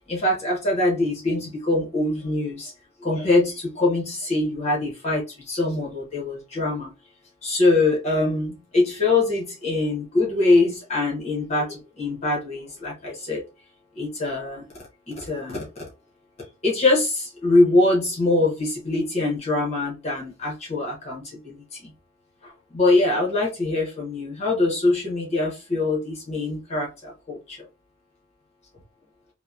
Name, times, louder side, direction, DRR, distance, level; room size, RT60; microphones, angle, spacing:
voice 1, 0.1-2.7 3.0-6.9 7.4-13.4 13.9-14.7 15.1-15.8 16.4-21.9 22.4-27.6, left 2 dB, 30° left, 1.0 m, -23 dB
2.9 x 2.1 x 2.3 m
head